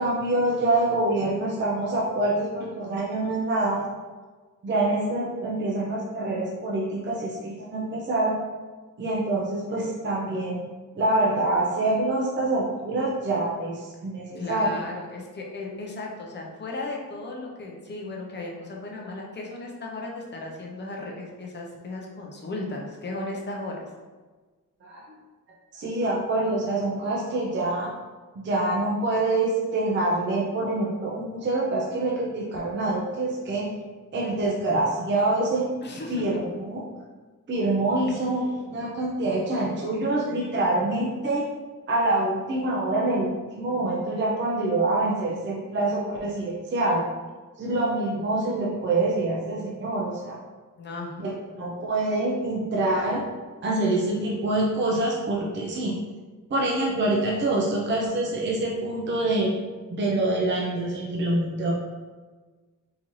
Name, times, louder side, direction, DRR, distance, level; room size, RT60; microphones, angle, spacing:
voice 1, 0.0-3.9 4.6-8.4 9.0-10.6 11.0-14.8 24.8-25.0 25.7-27.9 28.3-33.7 34.1-35.7 36.1-36.9 37.5-41.5 41.9-47.0 47.6-50.4 51.2-53.2 53.6-56.0 56.5-59.5 59.9-61.7, right 2 dB, 35° right, -3 dB, 0.5 m, -26 dB
voice 2, 14.4-23.9 35.8-36.4 38.1-38.3 50.8-51.1, left 2 dB, 35° left, -1 dB, 0.6 m, -36 dB
3.8 x 2.6 x 3.0 m, 1.4 s
wide cardioid pair, 175°, 33 cm